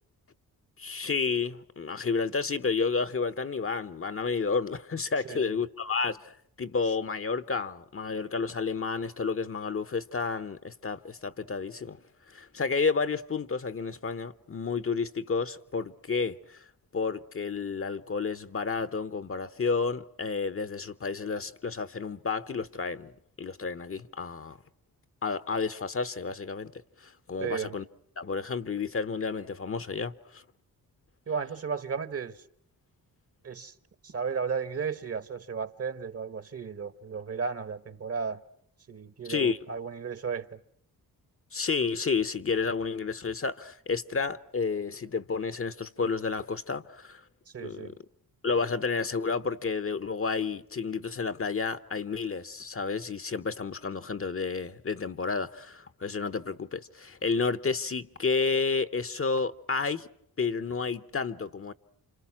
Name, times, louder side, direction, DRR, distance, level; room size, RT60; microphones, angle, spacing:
voice 1, 0.8-12.0 12.3-16.6 16.9-23.1 23.4-24.6 25.2-26.7 27.0-27.8 28.2-30.4 39.3-39.6 41.5-47.2 47.6-47.9 48.4-60.1 60.4-61.7, left 4 dB, 35° left, 1.0 m, -31 dB
voice 2, 5.2-5.6 27.4-27.7 31.3-32.4 33.4-33.7 34.0-38.4 38.9-40.6 47.5-47.9, right 6 dB, 40° right, 1.3 m, -34 dB
29.5 x 26.5 x 6.0 m
cardioid pair, 80°, 36 cm